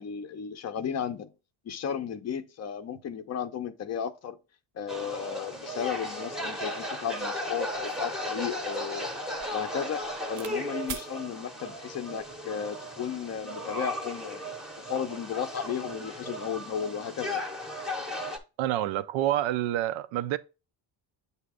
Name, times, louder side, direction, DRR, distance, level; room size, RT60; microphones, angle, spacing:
voice 1, 0.0-1.3 1.6-4.4 4.8-9.1 9.5-10.0 10.3-14.4 14.8-17.5, left 8 dB, 35° left, 0.5 m, -34 dB
sound 1, 4.9-18.4, left 1 dB, ahead, 0.7 m, -36 dB
sound 2, 7.2-7.3 7.7-10.6 10.9-11.1 12.0-12.3, right 7 dB, 40° right, 0.6 m, -44 dB
voice 2, 18.6-20.4, right 13 dB, 85° right, 0.6 m, -28 dB
7.7 x 2.8 x 4.8 m
cardioid pair, 160°, 45 cm